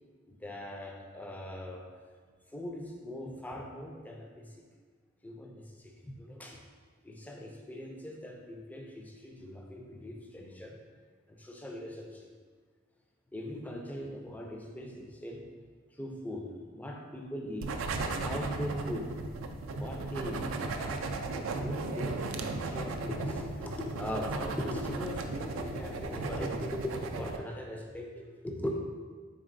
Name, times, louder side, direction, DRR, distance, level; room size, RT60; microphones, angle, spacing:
voice 1, 0.3-1.9 2.5-4.6 5.2-6.6 7.0-10.8 11.3-12.3 13.3-15.5 15.9-17.8 18.2-19.2 19.7-28.8, left 1 dB, 10° left, 1 dB, 0.3 m, -40 dB
sound 1, 17.6-27.4, right 3 dB, 75° right, 0.3 m, -36 dB
4.1 x 3.7 x 2.5 m, 1.5 s
head